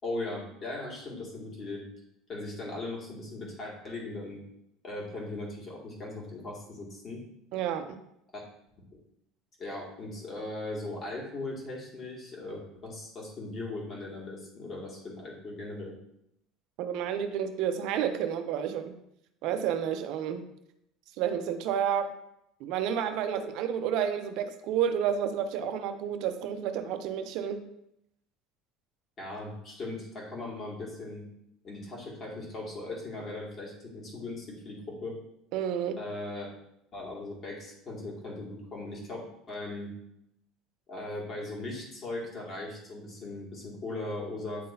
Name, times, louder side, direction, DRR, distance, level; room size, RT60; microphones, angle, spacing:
voice 1, 0.0-1.8 2.3-4.4 4.8-7.2 8.3-8.5 9.6-15.9 29.2-31.2 31.6-35.2 36.0-36.5 36.9-39.9 40.9-44.7, left 2 dB, 35° left, -3 dB, 2.2 m, -38 dB
voice 2, 7.5-8.0 16.8-19.0 19.4-20.5 21.2-22.1 22.6-27.7 35.5-36.0, right 8 dB, 65° right, 9 dB, 0.6 m, -30 dB
9.3 x 3.8 x 2.7 m, 0.78 s
supercardioid pair, 120°, 0 cm